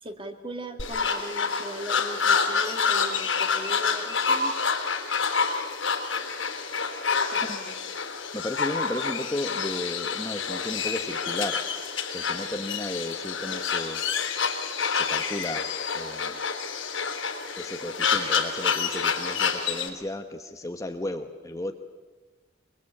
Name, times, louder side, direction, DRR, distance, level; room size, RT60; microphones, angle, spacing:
voice 1, 0.0-4.7 7.3-7.9, right 1 dB, 25° right, 6 dB, 2.0 m, -39 dB
sound 1, 0.8-19.9, left 5 dB, 80° left, 3.8 m, -28 dB
voice 2, 8.3-11.6 12.1-14.0 14.9-15.7 15.9-16.4 17.6-21.7, left 1 dB, 15° left, 6 dB, 1.0 m, -34 dB
24.5 x 22.5 x 8.6 m, 1.3 s
head